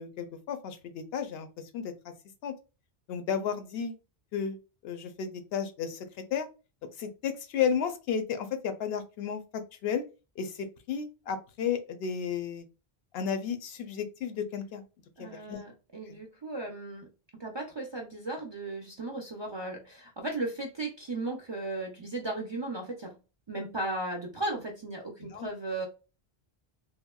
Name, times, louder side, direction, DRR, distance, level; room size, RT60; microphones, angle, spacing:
voice 1, 0.0-1.5 1.7-2.1 2.4-2.5 3.1-3.9 4.3-6.0 6.3-6.5 7.0-10.0 10.4-12.6 13.1-14.8 15.2-15.6 16.1-16.2 25.3-25.5, left 7 dB, 75° left, 8 dB, 0.8 m, -33 dB
voice 2, 15.2-17.1 17.4-23.1 23.5-25.9, right 2 dB, 40° right, 0 dB, 0.4 m, -36 dB
3.5 x 2.1 x 2.2 m, 0.30 s
omnidirectional pair, 1.0 m